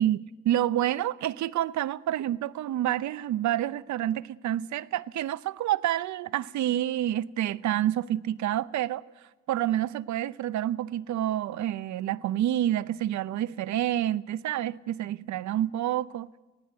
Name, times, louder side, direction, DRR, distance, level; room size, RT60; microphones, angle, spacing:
voice 1, 0.0-9.0 9.5-16.3, right 12 dB, 70° right, 0.7 m, -28 dB
19.5 x 17.0 x 9.3 m
cardioid pair, 90°, 30 cm